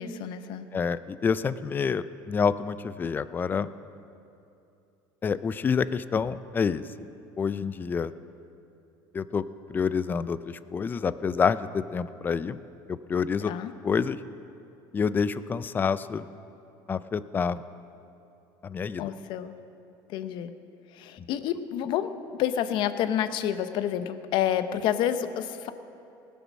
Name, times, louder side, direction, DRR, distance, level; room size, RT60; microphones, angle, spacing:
voice 1, 0.0-0.7 13.4-13.7 19.0-19.5 20.1-20.5 20.9-22.1 22.4-25.7, left 10 dB, 60° left, 11 dB, 0.7 m, -29 dB
voice 2, 0.7-3.7 5.2-6.8 7.4-8.1 9.1-12.6 12.9-13.5 13.8-14.2 14.9-16.3 16.9-17.6 18.6-19.1, left 6 dB, 20° left, 15 dB, 0.3 m, -28 dB
19.0 x 6.9 x 6.3 m, 2.7 s
cardioid pair, 135°, 9 cm